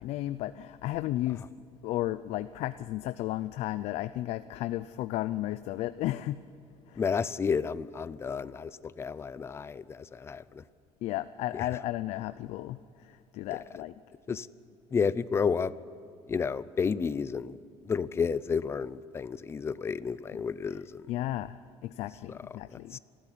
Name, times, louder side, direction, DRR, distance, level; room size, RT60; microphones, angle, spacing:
voice 1, 0.0-1.4 1.8-6.4 6.9-7.0 11.0-13.9 14.3-14.4 21.1-21.6 21.8-23.0, left 15 dB, 70° left, 13 dB, 0.5 m, -34 dB
voice 2, 7.0-8.7 9.0-10.6 11.5-11.7 13.5-13.6 14.3-14.5 14.9-15.7 16.3-17.6 17.9-21.0 22.3-22.4 22.9-23.0, left 6 dB, 25° left, 17 dB, 0.5 m, -31 dB
28.5 x 12.5 x 9.9 m, 2.5 s
cardioid pair, 155°, 11 cm